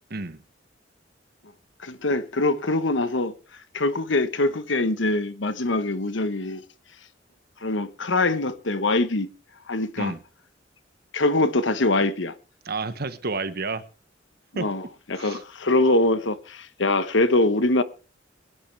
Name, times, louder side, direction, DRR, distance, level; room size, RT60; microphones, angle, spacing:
voice 1, 1.8-3.3 3.7-6.6 7.6-9.3 9.7-10.1 11.1-12.3 14.5-14.8 15.1-17.8, left 2 dB, 70° left, 1.2 m, -23 dB
voice 2, 12.6-13.8 14.5-14.7 15.2-15.4, right 3 dB, 55° right, 1.2 m, -30 dB
23.0 x 10.0 x 3.4 m
head